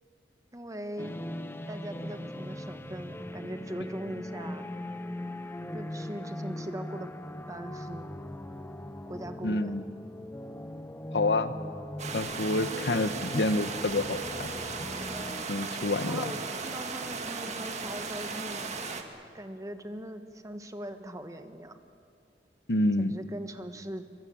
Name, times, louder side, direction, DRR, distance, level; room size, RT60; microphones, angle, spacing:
voice 1, 0.5-1.2 1.7-4.7 5.7-7.1 7.5-8.1 9.1-9.8 13.2-13.6 16.0-18.7 19.3-21.8 23.0-24.0, right 1 dB, 20° right, 8 dB, 1.3 m, -40 dB
sound 1, 1.0-15.5, left 1 dB, 15° left, 0.9 m, -40 dB
voice 2, 9.4-9.8 11.1-11.5 12.1-14.5 15.5-16.3 22.7-23.1, left 2 dB, 70° left, 11 dB, 1.1 m, -28 dB
sound 2, 12.0-19.0, right 4 dB, 40° right, 2.0 m, -36 dB
23.0 x 22.5 x 8.7 m, 2.3 s
head